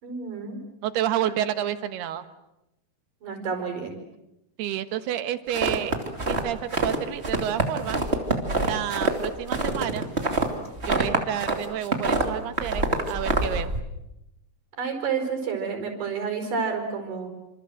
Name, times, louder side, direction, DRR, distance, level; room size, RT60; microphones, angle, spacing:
voice 1, 0.0-0.6 1.2-1.3 3.2-4.0 14.8-17.3, right 5 dB, 55° right, 4 dB, 6.5 m, -30 dB
voice 2, 0.8-2.3 4.6-8.0 8.6-10.1 10.9-13.7, right 11 dB, 85° right, 11 dB, 3.4 m, -30 dB
sound 1, 5.5-7.0 7.2-11.6 11.8-13.8, right 2 dB, 20° right, 2.3 m, -25 dB
28.5 x 27.0 x 7.8 m, 0.88 s
omnidirectional pair, 4.5 m